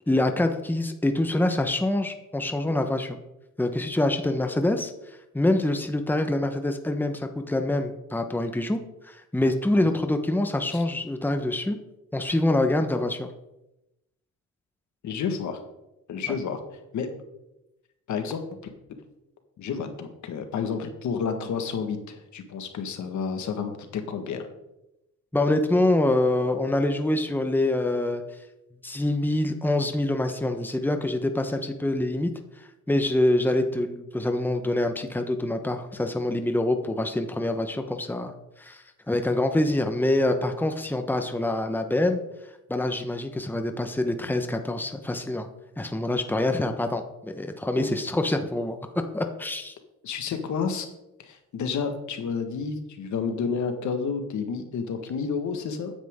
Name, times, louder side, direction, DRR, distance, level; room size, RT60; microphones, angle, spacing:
voice 1, 0.1-3.2 3.6-11.8 12.1-13.3 25.3-28.2 28.8-32.3 32.6-42.2 42.7-45.5 45.8-48.9 49.1-49.7, left 1 dB, 5° left, 6 dB, 1.2 m, -25 dB
voice 2, 15.0-15.6 16.1-16.6 16.9-17.1 18.1-18.4 19.6-24.5 47.8-47.9 50.0-50.9 51.2-55.9, left 6 dB, 70° left, 6 dB, 1.8 m, -30 dB
14.5 x 9.9 x 3.8 m, 0.92 s
cardioid pair, 90°, 30 cm